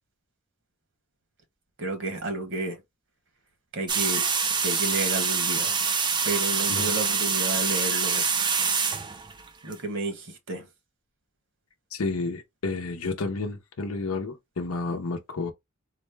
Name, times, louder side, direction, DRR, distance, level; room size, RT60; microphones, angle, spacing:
voice 1, 1.8-2.8 3.7-4.2 4.6-5.8 6.2-8.3 9.6-10.7, right 2 dB, 60° right, 1.2 m, -31 dB
sound 1, 3.9-9.7, right 5 dB, 20° right, 0.5 m, -25 dB
voice 2, 11.9-15.5, left 3 dB, 80° left, 0.7 m, -31 dB
4.0 x 2.1 x 3.3 m
head